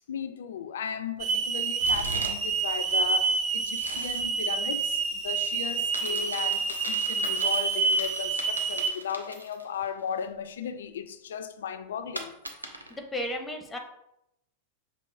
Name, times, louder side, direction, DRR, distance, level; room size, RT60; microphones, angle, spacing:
voice 1, 0.1-12.3, left 7 dB, 65° left, 0.3 m, -36 dB
Hiss / Alarm, 1.2-8.9, right 5 dB, 40° right, 0.6 m, -28 dB
sound 1, 1.8-2.6 2.8-4.3 5.8-9.8 10.2-10.3 12.1-13.0, right 1 dB, 85° right, 0.5 m, -39 dB
voice 2, 12.6-13.8, left 1 dB, 10° left, 0.6 m, -35 dB
6.0 x 2.7 x 2.6 m
figure-of-eight pair, 90°, 0 cm